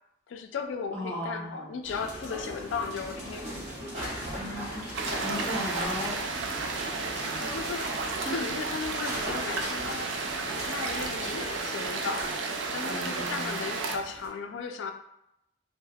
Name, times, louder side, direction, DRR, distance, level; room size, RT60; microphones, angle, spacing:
voice 1, 0.3-3.5 7.3-10.1 10.5-12.3 12.7-14.9, left 5 dB, 80° left, 6 dB, 0.3 m, -36 dB
voice 2, 0.9-1.7 4.3-4.9 5.2-6.2 8.2-8.4 12.9-13.5, equal, 10° left, -6 dB, 0.7 m, -36 dB
sound 1, 1.8-14.3, equal, 35° right, 1.1 m, -39 dB
sound 2, 4.9-14.0, right 4 dB, 75° right, 0.3 m, -33 dB
3.3 x 2.0 x 2.2 m, 0.80 s
head